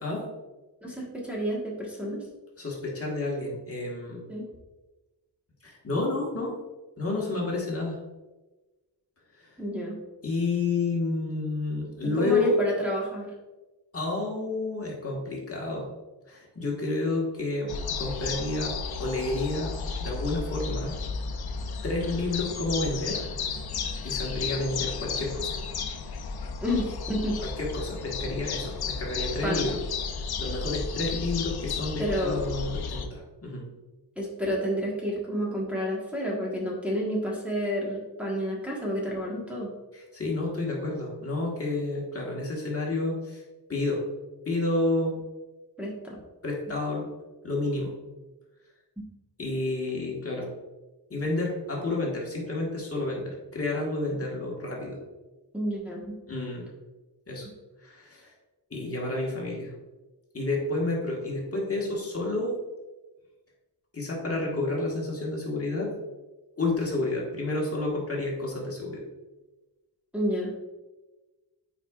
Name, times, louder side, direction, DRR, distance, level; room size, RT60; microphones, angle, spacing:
voice 1, 0.0-0.3 2.6-4.2 5.6-6.6 7.0-8.0 9.4-9.6 10.2-12.6 13.9-15.9 16.3-19.7 20.0-21.0 21.8-23.2 24.0-25.5 27.4-29.8 30.4-33.7 39.9-43.4 43.7-44.0 44.4-45.2 46.4-47.1 47.4-47.9 49.4-50.5 51.1-55.0 56.3-56.7 57.3-57.5 57.8-58.3 58.7-59.7 60.3-62.6 63.9-66.0 66.6-69.0, left 2 dB, 35° left, -3 dB, 1.5 m, -30 dB
voice 2, 0.8-2.2 4.3-4.5 9.6-10.0 12.0-13.3 26.6-27.4 29.4-29.7 32.0-32.4 34.2-39.7 45.8-46.2 55.5-56.2 70.1-70.5, equal, 5° right, -5 dB, 1.3 m, -30 dB
sound 1, 17.7-33.1, left 5 dB, 70° left, 0.7 m, -33 dB
8.9 x 4.7 x 2.4 m, 1.1 s
wide cardioid pair, 120°, 39 cm